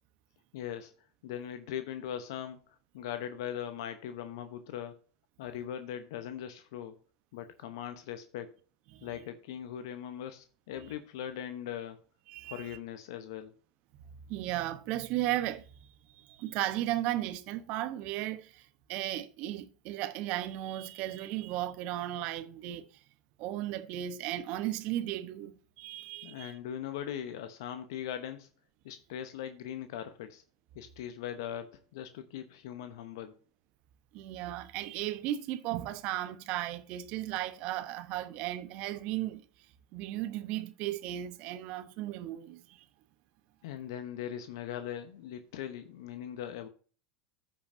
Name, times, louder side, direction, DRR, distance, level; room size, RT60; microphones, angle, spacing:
voice 1, 0.5-0.9 1.2-2.6 2.9-5.0 5.4-6.9 7.3-8.5 9.0-12.0 12.5-13.5 26.2-28.5 28.8-30.4 30.7-33.4 43.6-46.7, left 10 dB, 70° left, 0.9 m, -40 dB
voice 2, 12.3-12.7 14.3-15.6 16.2-22.9 23.4-26.5 34.1-39.4 39.9-42.8, right 14 dB, 55° right, 1.0 m, -35 dB
14.5 x 5.5 x 2.7 m
hypercardioid pair, 95°, 2 cm